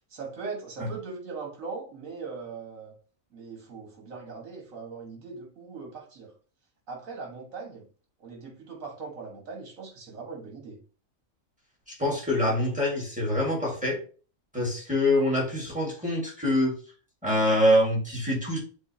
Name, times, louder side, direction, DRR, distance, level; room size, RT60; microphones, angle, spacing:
voice 1, 0.1-2.9 3.3-6.3 6.9-7.9 8.2-10.8, right 4 dB, 75° right, 0 dB, 1.7 m, -40 dB
voice 2, 11.9-14.0 14.5-16.8 17.2-18.6, left 1 dB, 5° right, -3 dB, 1.6 m, -25 dB
7.4 x 2.6 x 2.7 m, 0.38 s
omnidirectional pair, 1.4 m